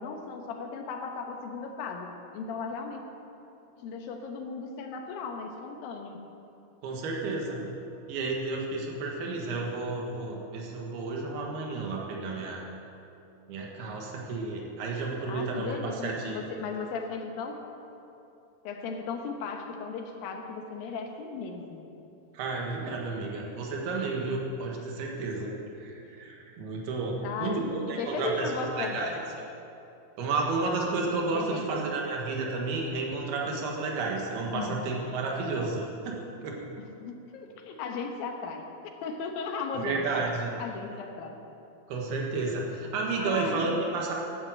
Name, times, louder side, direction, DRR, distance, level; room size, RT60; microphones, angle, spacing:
voice 1, 0.0-3.0 3.8-6.2 15.2-17.6 18.6-21.9 26.1-26.2 27.2-27.7 28.0-29.2 31.3-31.8 34.5-34.8 36.8-38.7 39.0-40.3 40.6-41.4 43.2-43.7, left 4 dB, 75° left, 3 dB, 2.8 m, -36 dB
voice 2, 6.8-7.7 8.1-12.6 13.5-16.4 22.3-29.1 30.2-36.6 39.8-40.5 41.9-44.1, right 3 dB, 90° right, -1 dB, 3.5 m, -32 dB
12.0 x 9.6 x 7.7 m, 2.8 s
omnidirectional pair, 4.4 m